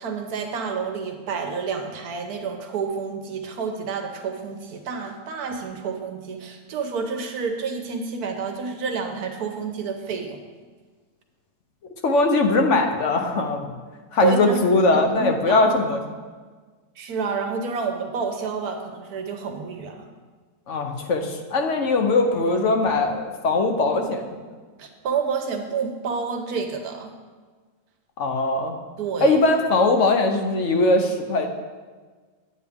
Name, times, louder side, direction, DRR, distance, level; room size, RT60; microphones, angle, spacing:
voice 1, 0.0-10.4 14.2-15.7 17.0-20.0 24.8-27.1 29.0-29.4, right 5 dB, 75° right, 4 dB, 1.3 m, -29 dB
voice 2, 12.0-13.7 14.1-16.0 20.7-24.3 28.2-28.7 29.2-31.5, left 2 dB, 55° left, 4 dB, 1.0 m, -20 dB
8.7 x 8.6 x 3.5 m, 1.4 s
omnidirectional pair, 1.6 m